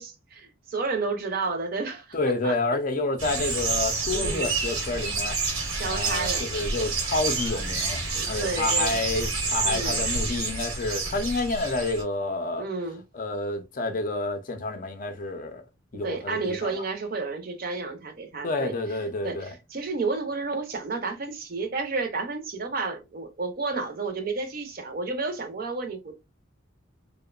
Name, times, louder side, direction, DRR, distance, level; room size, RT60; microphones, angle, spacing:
voice 1, 0.0-2.2 2.4-2.6 4.1-4.5 5.8-6.5 8.1-9.0 9.6-10.0 12.6-13.0 15.9-26.1, right 3 dB, 45° right, 0.5 m, -31 dB
voice 2, 2.1-5.3 5.8-8.0 8.3-12.6 13.1-15.6 15.9-16.7 18.4-19.5, left 2 dB, 40° left, 0.4 m, -29 dB
sound 1, 3.2-12.0, right 3 dB, 85° right, 0.9 m, -28 dB
2.8 x 2.1 x 2.3 m
head